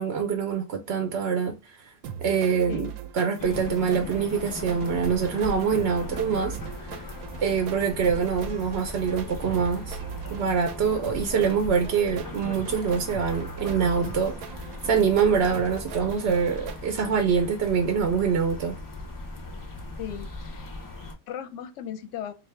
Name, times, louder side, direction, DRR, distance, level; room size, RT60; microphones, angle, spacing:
voice 1, 0.0-1.9 2.2-6.6 6.8-7.0 7.4-10.0 10.3-14.3 14.8-18.7, right 6 dB, 60° right, 0.7 m, -25 dB
sound 1, 2.0-16.8, right 8 dB, 85° right, 1.1 m, -40 dB
sound 2, 3.4-21.1, left 2 dB, 25° left, 0.4 m, -38 dB
voice 2, 20.0-20.7 21.3-22.3, left 10 dB, 70° left, 0.8 m, -37 dB
3.6 x 2.7 x 3.2 m
omnidirectional pair, 1.5 m